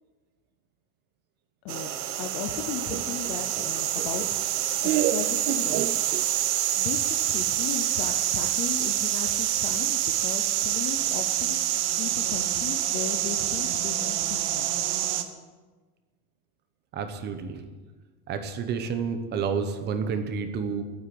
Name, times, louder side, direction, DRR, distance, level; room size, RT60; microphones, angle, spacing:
sound 1, 1.7-15.2, right 12 dB, 45° right, 1.1 m, -27 dB
voice 1, 2.2-4.2 4.8-6.5 6.7-11.6 11.9-14.7, left 8 dB, 25° left, 5 dB, 0.4 m, -36 dB
Laughter, 2.9-6.6, right 12 dB, 90° right, 1.0 m, -30 dB
voice 2, 16.9-17.6 18.3-20.8, right 6 dB, 20° right, 9 dB, 0.9 m, -30 dB
12.0 x 9.7 x 8.4 m, 1.3 s
supercardioid pair, 175°, 46 cm